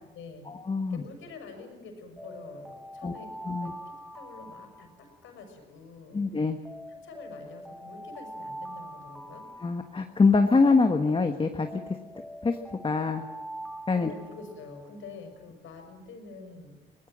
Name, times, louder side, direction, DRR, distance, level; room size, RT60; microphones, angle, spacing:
voice 1, 0.1-0.5 0.9-6.2 6.9-9.4 13.9-16.7, left 4 dB, 80° left, 5 dB, 6.0 m, -46 dB
voice 2, 0.7-1.0 3.0-3.1 3.4-3.7 6.1-6.6 9.6-11.8 12.4-12.6 12.8-13.2 13.9-14.1, left 4 dB, 25° left, 5 dB, 1.5 m, -24 dB
Alarm, 2.2-5.5 6.6-10.5 11.6-14.9, right 1 dB, ahead, 1.2 m, -43 dB
23.5 x 18.5 x 7.7 m, 1.2 s
cardioid pair, 90°, 20 cm